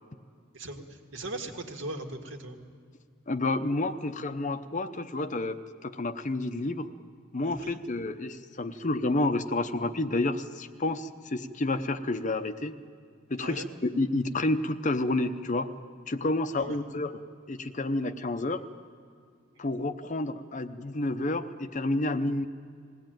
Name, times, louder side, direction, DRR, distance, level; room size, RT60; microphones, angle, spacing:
voice 1, 0.5-2.6 7.4-7.8 13.4-13.7 16.6-16.8, right 2 dB, 65° right, 3 dB, 1.9 m, -39 dB
voice 2, 3.3-6.9 7.3-12.8 13.3-15.7 16.1-17.1 17.5-18.6 19.6-22.5, left 2 dB, 35° left, 9 dB, 0.7 m, -30 dB
20.5 x 17.0 x 9.1 m, 2.2 s
head